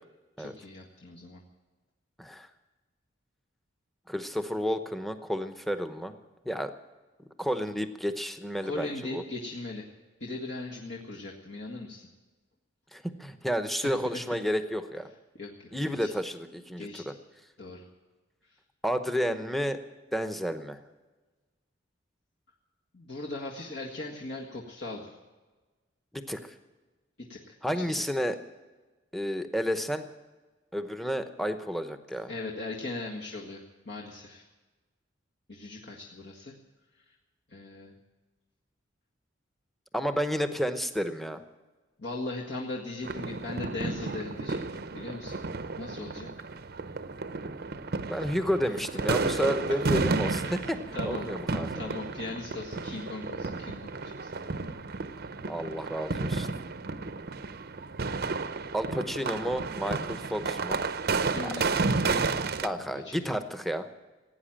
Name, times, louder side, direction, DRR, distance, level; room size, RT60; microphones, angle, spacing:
voice 1, 0.4-1.4 8.6-9.8 10.2-12.1 13.8-13.9 15.4-15.7 16.0-16.1 16.8-17.0 17.6-17.8 22.9-25.2 27.2-28.0 32.3-34.4 35.5-36.6 37.5-37.9 42.0-45.4 45.8-46.5 49.5-49.6 49.8-49.9 50.4-51.3 51.7-54.5 61.3-62.4 63.0-63.3, left 2 dB, 60° left, -2 dB, 1.8 m, -39 dB
voice 2, 4.1-6.2 6.4-6.7 7.4-9.2 12.9-15.1 15.7-17.1 18.8-19.8 20.1-20.8 26.1-26.5 27.6-28.4 29.1-30.1 30.7-32.3 39.9-41.4 48.1-50.8 51.1-51.8 55.5-56.5 58.7-60.8 62.6-63.9, equal, ahead, 9 dB, 0.9 m, -31 dB
sound 1, 43.0-62.7, right 3 dB, 55° right, 0.7 m, -32 dB
17.0 x 9.3 x 8.9 m, 1.2 s
head